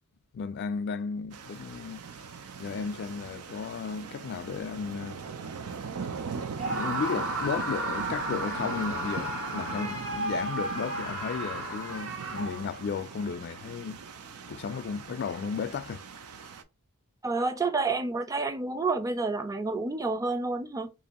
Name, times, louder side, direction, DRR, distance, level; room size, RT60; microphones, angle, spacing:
voice 1, 0.3-2.0 2.6-5.2 6.7-14.0 14.5-16.0, left 6 dB, 50° left, 0.3 m, -34 dB
sound 1, 1.3-16.6, right 5 dB, 85° right, 0.5 m, -41 dB
Screaming, 6.6-12.8, right 1 dB, 65° right, 1.2 m, -33 dB
voice 2, 17.2-20.9, right 3 dB, 15° right, 0.4 m, -29 dB
2.9 x 2.6 x 4.1 m
head